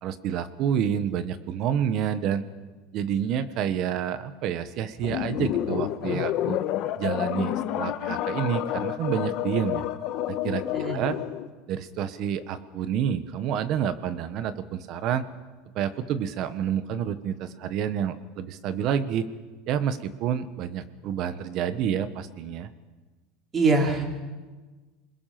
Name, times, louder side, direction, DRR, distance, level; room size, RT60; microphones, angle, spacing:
voice 1, 0.0-2.4 2.9-6.6 7.0-9.8 10.3-10.6 10.9-11.2 11.7-15.2 15.7-19.3 19.7-22.7, right 9 dB, 40° right, 12 dB, 1.2 m, -28 dB
sound 1, 5.0-11.5, left 12 dB, 45° left, 1.2 m, -29 dB
voice 2, 23.5-24.0, right 3 dB, 20° right, 3 dB, 3.0 m, -23 dB
27.5 x 21.0 x 5.9 m, 1.3 s
supercardioid pair, 160°, 0 cm